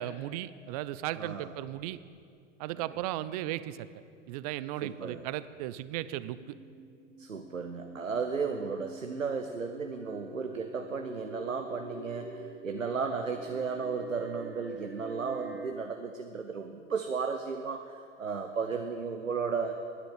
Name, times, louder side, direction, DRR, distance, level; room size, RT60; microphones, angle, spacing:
voice 1, 0.0-2.0 2.6-3.9 4.3-6.4, right 14 dB, 30° right, 16 dB, 0.4 m, -36 dB
sound 1, 0.6-1.1 1.8-1.9 3.3-3.7 3.9-4.9 6.2-15.7, right 2 dB, 5° right, 0.9 m, -46 dB
voice 2, 1.2-1.5 4.8-5.2 7.2-19.8, right 5 dB, 90° right, 5 dB, 0.8 m, -34 dB
10.0 x 9.7 x 8.6 m, 2.3 s
figure-of-eight pair, 95°, 38 cm